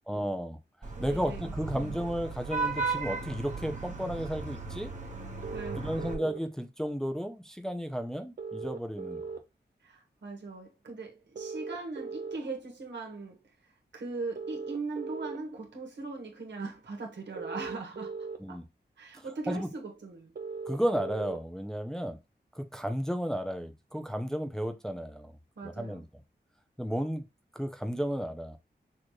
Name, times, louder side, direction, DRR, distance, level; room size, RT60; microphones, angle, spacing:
voice 1, 0.1-0.6 1.0-4.9 5.7-9.2 18.4-18.7 19.5-19.7 20.7-22.2 22.5-25.3 25.6-26.1 26.8-27.3 27.5-28.6, equal, 5° left, 0.5 m, -33 dB
Vehicle horn car horn honking / Traffic noise roadway noise, 0.8-6.1, right 4 dB, 40° right, 1.3 m, -36 dB
voice 2, 0.9-1.9 5.5-5.8 9.8-13.4 13.9-18.6 19.0-20.3 25.6-26.0, right 3 dB, 80° right, 1.4 m, -40 dB
sound 1, 5.4-6.4 8.4-9.4 11.3-12.4 14.3-15.4 17.3-18.4 20.3-21.4, right 5 dB, 60° right, 0.7 m, -38 dB
6.3 x 2.5 x 3.1 m
wide cardioid pair, 75°, 18 cm